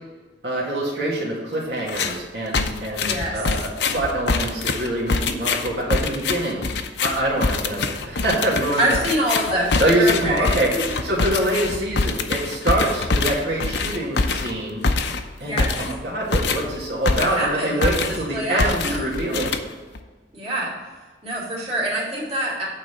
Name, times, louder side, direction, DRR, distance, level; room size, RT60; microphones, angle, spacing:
voice 1, 0.4-6.6 7.0-9.0 9.8-10.7 11.0-14.8 15.4-19.5, right 1 dB, 75° right, -6 dB, 2.1 m, -25 dB
sound 1, 1.9-2.2 2.5-17.5 17.8-18.3 18.6-20.0, left 4 dB, 75° left, 0.7 m, -24 dB
voice 2, 3.0-3.4 8.8-10.8 15.4-15.7 17.1-18.0 18.3-19.0 20.3-20.7 21.2-22.7, right 1 dB, 35° right, -5 dB, 2.6 m, -25 dB
8.9 x 4.1 x 6.8 m, 1.3 s
head